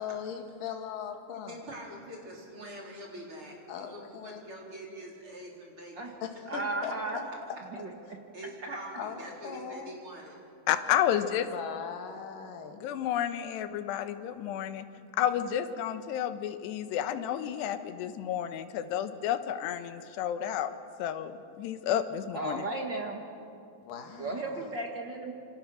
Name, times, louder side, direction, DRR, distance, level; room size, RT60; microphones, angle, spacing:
voice 1, 0.0-1.6 3.7-4.5 6.2-7.2 8.9-9.9 11.2-12.8 23.9-24.7, left 7 dB, 60° left, 4 dB, 3.3 m, -39 dB
voice 2, 1.5-6.1 8.3-10.4, right 1 dB, 30° right, -2 dB, 4.3 m, -44 dB
voice 3, 6.5-7.2 7.8-7.9 22.3-23.2 24.2-25.3, right 2 dB, 60° right, 1 dB, 1.1 m, -34 dB
voice 4, 10.7-11.5 12.8-14.8 15.2-20.7 21.0-22.7, left 10 dB, 90° left, 10 dB, 3.2 m, -31 dB
28.0 x 26.0 x 6.3 m, 2.5 s
omnidirectional pair, 4.7 m